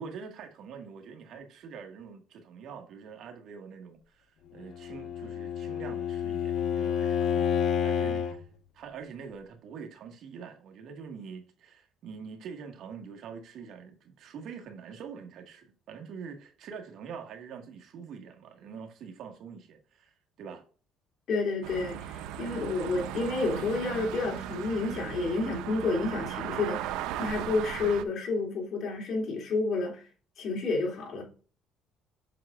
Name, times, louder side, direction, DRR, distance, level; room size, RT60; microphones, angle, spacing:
voice 1, 0.0-4.3 4.5-8.4 8.7-20.1 20.4-20.6, right 6 dB, 60° right, 1.7 m, -44 dB
Bowed string instrument, 4.7-8.4, left 8 dB, 75° left, 1.2 m, -29 dB
voice 2, 21.3-30.0 30.4-31.2, left 3 dB, 50° left, 2.9 m, -30 dB
sound 1, 21.6-28.0, right 11 dB, 85° right, 0.6 m, -37 dB
7.6 x 6.6 x 2.5 m
cardioid pair, 115°, 0 cm